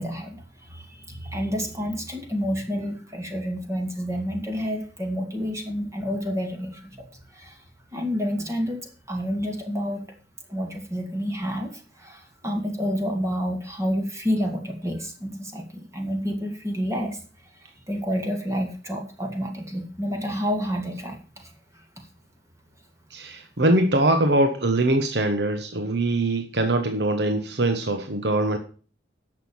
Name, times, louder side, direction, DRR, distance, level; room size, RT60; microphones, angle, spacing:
voice 1, 0.0-7.6 7.9-10.0 10.5-22.1, equal, 15° right, 2 dB, 2.4 m, -29 dB
voice 2, 23.1-28.6, right 1 dB, 70° right, 6 dB, 1.1 m, -22 dB
10.5 x 6.7 x 7.1 m, 0.38 s
head